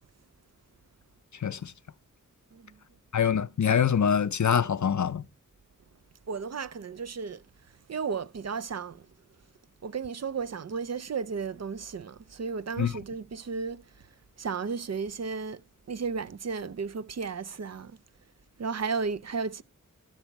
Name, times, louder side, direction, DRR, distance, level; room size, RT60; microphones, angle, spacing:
voice 1, 1.4-1.7 3.1-5.2 12.8-12.9, left 7 dB, 60° left, 0.6 m, -24 dB
voice 2, 6.3-7.4 7.9-9.1 9.8-13.8 14.4-15.6 15.9-18.0 18.6-19.6, right 5 dB, 55° right, 0.5 m, -34 dB
12.5 x 7.1 x 4.5 m
wide cardioid pair, 45°, 32 cm